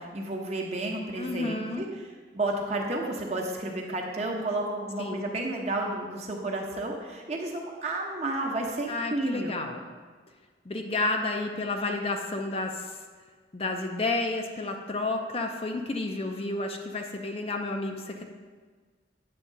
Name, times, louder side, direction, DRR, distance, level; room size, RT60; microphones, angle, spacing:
voice 1, 0.0-1.9 2.3-9.6, right 2 dB, 35° right, 0 dB, 0.9 m, -31 dB
voice 2, 1.2-1.8 5.0-5.2 8.9-9.8 10.6-13.0 13.5-18.2, left 2 dB, 30° left, 3 dB, 0.5 m, -31 dB
8.5 x 3.7 x 6.6 m, 1.5 s
head